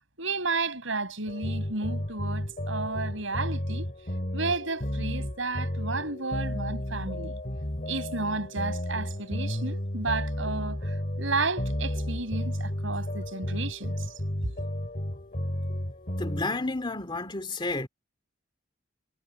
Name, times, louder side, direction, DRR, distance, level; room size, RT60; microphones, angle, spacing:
voice 1, 0.2-3.9 4.3-7.4 7.9-14.1, right 3 dB, 75° right, 5.9 m, -32 dB
sound 1, 1.3-16.4, equal, 40° left, 2.7 m, -32 dB
voice 2, 16.2-17.9, left 2 dB, 25° left, 2.5 m, -31 dB
head